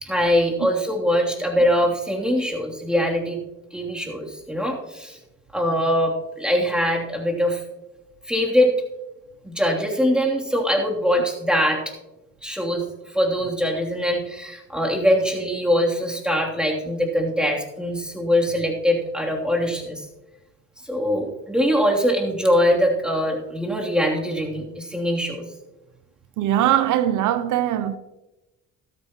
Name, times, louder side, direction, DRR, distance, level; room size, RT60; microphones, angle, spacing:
voice 1, 0.0-3.4 3.7-5.2 5.5-7.6 8.3-8.7 9.4-11.9 12.4-20.0 20.8-25.4, equal, 5° right, 3.0 m, -22 dB
voice 2, 26.4-28.0, right 12 dB, 80° right, 0.6 m, -21 dB
14.5 x 13.0 x 3.0 m
cardioid pair, 90°, 30 cm